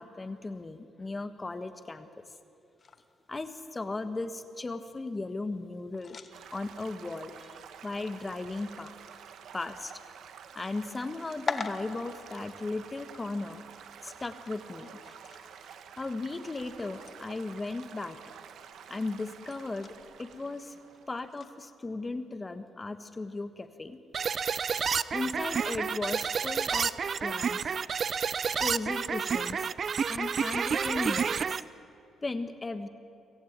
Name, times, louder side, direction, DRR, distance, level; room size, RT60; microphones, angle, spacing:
voice 1, 0.0-2.3 3.3-6.2 6.5-8.9 9.5-9.9 10.5-13.6 14.0-14.9 16.0-18.2 18.9-20.8 21.1-24.0 25.1-26.9 27.2-27.7 28.6-29.7 30.1-31.6 32.2-32.9, left 3 dB, 25° left, 9 dB, 1.5 m, -36 dB
sound 1, 2.8-21.6, left 5 dB, 40° left, 1.4 m, -47 dB
Stream / Gurgling / Trickle dribble, 6.3-21.4, right 8 dB, 70° right, 1.3 m, -50 dB
sound 2, 24.1-31.6, right 6 dB, 45° right, 0.6 m, -30 dB
24.0 x 15.5 x 8.9 m, 2.6 s
cardioid pair, 90°, 0 cm